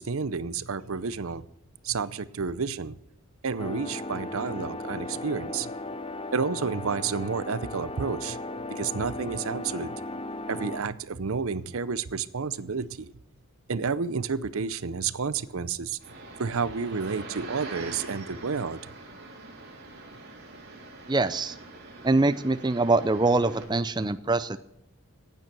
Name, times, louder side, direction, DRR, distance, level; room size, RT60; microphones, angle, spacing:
voice 1, 0.0-1.5 1.8-3.0 3.4-5.7 6.3-8.4 8.7-10.0 10.5-13.1 13.7-16.0 16.4-18.9, right 5 dB, 70° right, 17 dB, 0.7 m, -30 dB
sound 1, 3.6-10.8, left 2 dB, 25° left, 0.8 m, -36 dB
sound 2, 16.0-23.6, right 2 dB, 45° right, 3.5 m, -44 dB
voice 2, 21.1-21.6 22.0-24.6, right 2 dB, 20° right, 12 dB, 0.5 m, -24 dB
15.5 x 9.3 x 6.1 m, 0.80 s
head